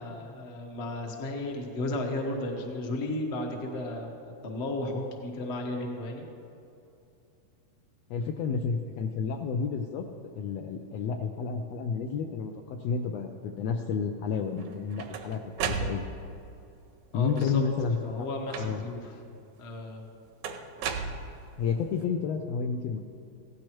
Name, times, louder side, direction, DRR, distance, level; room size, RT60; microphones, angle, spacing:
voice 1, 0.0-4.2 4.4-6.3 17.1-17.6 18.0-19.1 19.6-20.1, left 1 dB, 45° left, 1 dB, 0.8 m, -34 dB
voice 2, 8.1-10.1 10.3-16.0 17.1-18.0 18.6-18.8 21.6-23.0, left 6 dB, 75° left, 3 dB, 1.5 m, -30 dB
sound 1, 14.6-16.4 17.3-17.8 18.5-19.1 20.4-21.7, right 5 dB, 80° right, 2.2 m, -35 dB
16.5 x 15.0 x 3.1 m, 2.7 s
omnidirectional pair, 3.5 m